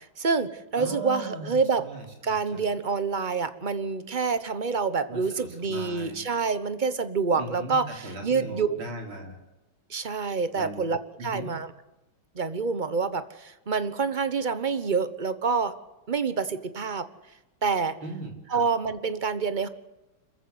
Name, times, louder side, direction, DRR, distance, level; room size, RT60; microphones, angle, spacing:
voice 1, 0.0-1.9 2.2-8.7 9.9-11.7 12.3-15.7 16.1-17.1 17.6-18.0 18.5-19.7, right 5 dB, 30° right, 12 dB, 0.9 m, -27 dB
voice 2, 0.8-2.0 2.5-2.7 5.1-6.2 7.4-9.4 10.5-10.8 11.2-11.5 18.0-18.6, right 2 dB, 80° right, 2 dB, 5.0 m, -38 dB
27.0 x 14.5 x 8.1 m, 1.0 s
omnidirectional pair, 2.2 m